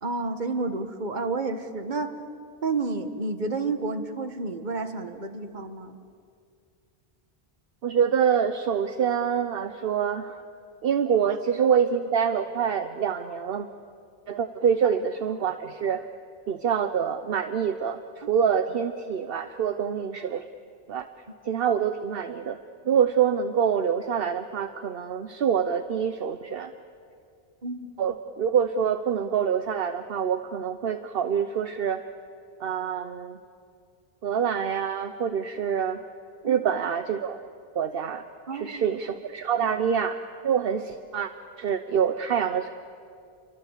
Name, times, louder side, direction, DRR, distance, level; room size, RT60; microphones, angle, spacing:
voice 1, 0.0-2.1 2.6-6.0 27.6-27.9 36.4-36.6 38.5-38.9, right 3 dB, 50° right, 8 dB, 1.6 m, -30 dB
voice 2, 7.8-10.4 10.8-13.7 14.3-16.1 16.5-20.4 20.9-21.1 21.4-22.6 22.8-26.7 28.0-32.0 32.6-33.4 34.2-36.0 36.4-37.4 37.7-38.2 38.5-40.2 40.4-41.3 41.6-42.7, right 7 dB, 65° right, 10 dB, 1.0 m, -26 dB
28.0 x 24.0 x 8.2 m, 2.3 s
omnidirectional pair, 1.0 m